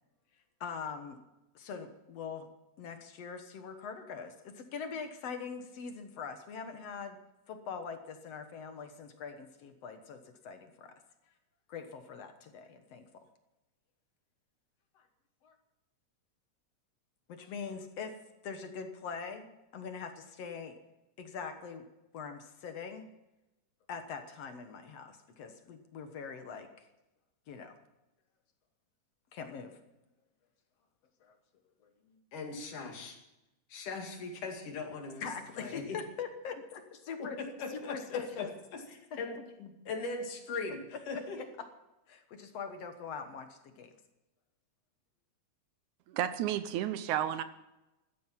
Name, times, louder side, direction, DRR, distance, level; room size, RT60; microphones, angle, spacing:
voice 1, 0.6-1.2 1.6-2.5 2.8-7.2 7.5-10.2 10.4-10.9 11.7-13.1 15.0-15.1 15.4-15.6 17.3-18.2 18.4-20.8 21.2-21.9 22.1-23.1 23.9-26.9 27.5-27.8 29.3-29.8 31.2-31.3 31.8-32.2 35.2-37.4 37.7-38.5 39.1-39.2 41.1-41.2 42.1-43.9, left 6 dB, 60° left, 7 dB, 2.1 m, -42 dB
voice 2, 32.3-33.2 33.7-35.3 35.6-36.0 37.2-38.5 38.7-41.4, left 3 dB, 75° left, 3 dB, 3.8 m, -40 dB
voice 3, 46.1-47.4, right 11 dB, 75° right, 12 dB, 2.0 m, -32 dB
15.5 x 12.5 x 5.8 m, 0.98 s
omnidirectional pair, 3.7 m